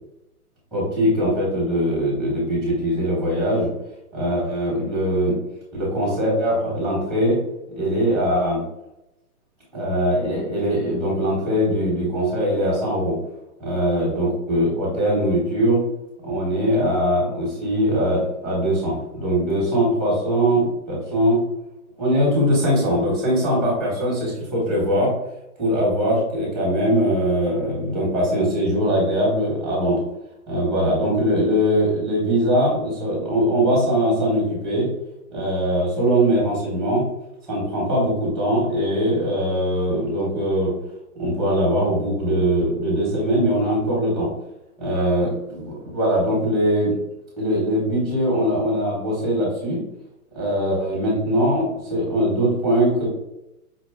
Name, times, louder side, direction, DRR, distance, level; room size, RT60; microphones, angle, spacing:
voice 1, 0.7-3.7 4.1-5.4 5.7-7.4 7.7-8.6 9.7-13.2 13.6-15.8 16.2-21.4 22.0-25.1 25.6-30.0 30.5-34.9 35.3-37.0 37.5-40.7 41.1-44.3 44.8-47.0 47.4-49.8 50.3-53.0, equal, ahead, -5 dB, 1.1 m, -21 dB
5.0 x 2.2 x 3.5 m, 0.88 s
hypercardioid pair, 165°, 46 cm